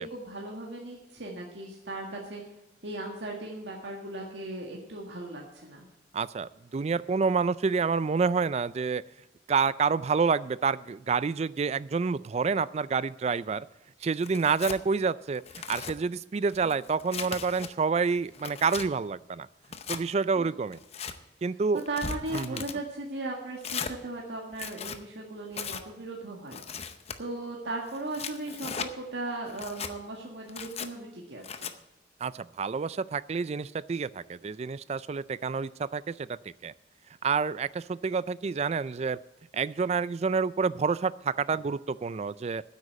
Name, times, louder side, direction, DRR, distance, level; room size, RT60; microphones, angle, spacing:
voice 1, 0.0-2.4 2.8-5.9 20.4-20.5 21.9-26.9 27.2-31.7, right 2 dB, 80° right, -1 dB, 1.7 m, -37 dB
voice 2, 6.1-9.0 9.5-13.7 14.0-15.4 15.7-19.5 19.9-20.8 21.4-21.8 22.3-22.6 32.2-36.4 36.6-36.7 37.2-39.2 39.5-42.6, right 5 dB, 35° right, 18 dB, 0.3 m, -28 dB
Tearing, 14.2-14.8 15.3-15.9 16.5-17.7 18.2-18.9 19.6-20.0 20.7-21.1 21.8-22.8 23.6-23.9 24.5-25.0 25.5-25.8 26.5-27.2 27.9-28.9 29.5-29.9 30.5-30.9 31.4-31.7, left 6 dB, 35° left, 0.7 m, -38 dB
9.8 x 8.3 x 7.8 m, 0.92 s
head